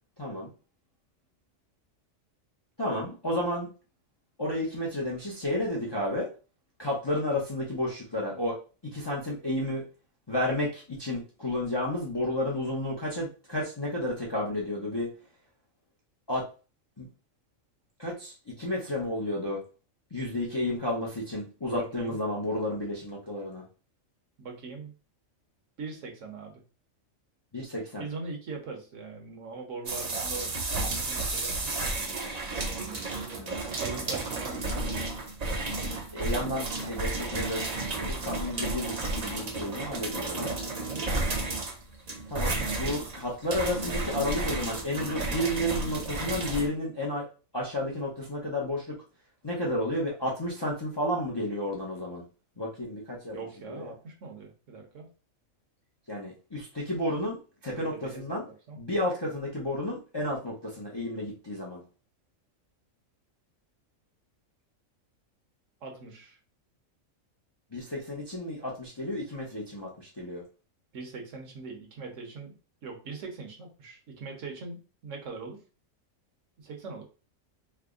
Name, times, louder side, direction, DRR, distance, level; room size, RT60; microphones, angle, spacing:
voice 1, 0.2-0.5 2.8-3.7 4.4-6.3 6.8-8.6 8.9-9.8 10.3-15.1 16.3-16.5 17.0-17.1 18.0-19.6 20.1-23.6 27.5-28.0 33.4-33.6 36.1-37.6 38.0-40.5 42.3-47.3 47.5-48.8 49.4-52.2 52.6-53.4 53.7-53.9 56.1-57.4 57.6-58.4 58.8-61.8 67.7-70.4, left 1 dB, 30° left, -4 dB, 0.4 m, -31 dB
voice 2, 21.7-22.2 24.4-24.9 25.8-26.6 28.0-32.1 32.7-33.0 33.7-35.1 40.7-41.0 53.3-55.1 57.6-58.4 58.7-58.8 65.8-66.4 70.9-72.5 72.8-75.6 76.6-77.1, right 4 dB, 65° right, 2 dB, 1.2 m, -41 dB
sound 1, 29.9-46.7, right 2 dB, 40° right, 0.6 m, -32 dB
3.3 x 2.0 x 3.6 m, 0.34 s
omnidirectional pair, 1.4 m